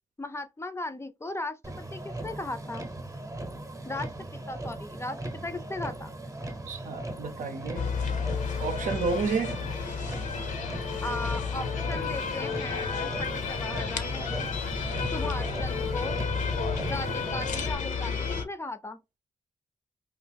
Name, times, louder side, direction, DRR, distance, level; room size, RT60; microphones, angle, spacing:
voice 1, 0.2-2.9 3.8-4.1 4.5-6.1 11.0-14.5 15.1-16.2 16.9-19.0, left 2 dB, 20° left, 0.5 m, -37 dB
Motor vehicle (road), 1.6-17.7, right 1 dB, 25° right, 0.8 m, -38 dB
voice 2, 6.7-8.2 8.6-9.6, right 4 dB, 75° right, 0.6 m, -31 dB
sound 1, 7.7-18.4, left 6 dB, 75° left, 0.6 m, -32 dB
3.0 x 2.5 x 3.4 m
cardioid pair, 75°, 13 cm